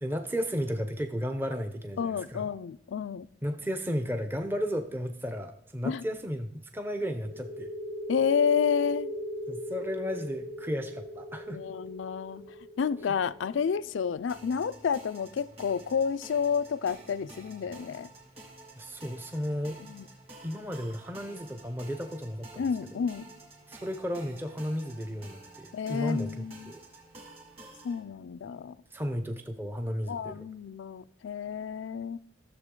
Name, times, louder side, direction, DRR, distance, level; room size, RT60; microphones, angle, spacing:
voice 1, 0.0-2.5 3.4-7.7 9.5-11.6 18.8-19.8 20.4-22.7 23.7-26.8 28.9-30.4, equal, 10° right, 0.6 m, -34 dB
voice 2, 2.0-3.3 5.8-6.0 8.1-9.1 11.5-12.4 12.8-18.1 19.8-20.0 22.6-23.2 25.7-26.7 27.8-28.8 30.1-32.2, left 6 dB, 75° left, 0.4 m, -30 dB
sound 1, 7.2-14.6, equal, 70° right, 2.0 m, -39 dB
sound 2, 14.3-28.0, right 2 dB, 30° right, 1.8 m, -51 dB
14.0 x 6.9 x 3.7 m
head